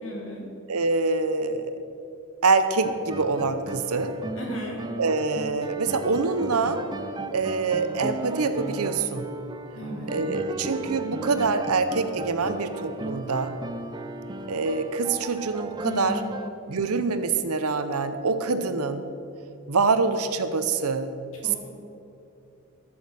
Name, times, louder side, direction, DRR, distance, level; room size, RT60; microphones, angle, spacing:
voice 1, 0.0-0.5 4.4-4.8 9.7-10.2 15.8-16.4 21.4-21.6, left 1 dB, 65° left, -2 dB, 2.7 m, -35 dB
voice 2, 0.7-1.8 2.4-4.1 5.0-6.8 7.3-9.3 10.1-13.5 14.5-16.2 16.7-19.1 19.7-21.1, right 4 dB, 90° right, 10 dB, 0.8 m, -25 dB
sound 1, 2.8-16.5, right 2 dB, 20° right, 0.4 m, -36 dB
13.5 x 6.3 x 6.4 m, 2.7 s
head